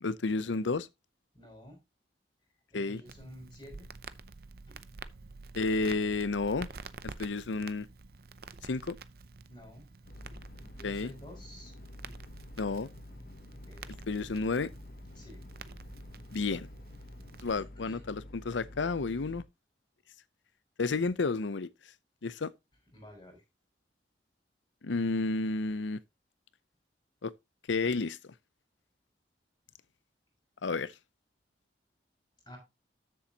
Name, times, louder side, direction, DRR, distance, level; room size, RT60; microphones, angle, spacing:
voice 1, 0.0-0.9 2.7-3.0 5.5-6.7 7.0-7.9 8.6-9.0 10.8-11.1 12.6-12.9 14.1-14.7 16.3-16.7 17.4-19.4 20.8-21.7 22.2-22.5 24.8-26.0 27.2-27.3 27.7-28.3 30.6-30.9, left 3 dB, 80° left, 0.7 m, -31 dB
voice 2, 1.3-1.8 2.7-3.9 4.7-4.8 9.5-9.9 10.7-11.7 13.5-13.9 15.2-15.4 17.6-18.0 22.9-23.4 32.5-32.6, equal, 25° left, 5.6 m, -51 dB
Crackle, 3.0-17.5, right 4 dB, 55° right, 0.7 m, -49 dB
sound 1, 10.0-19.4, left 1 dB, 50° left, 0.9 m, -49 dB
13.0 x 7.1 x 2.9 m
head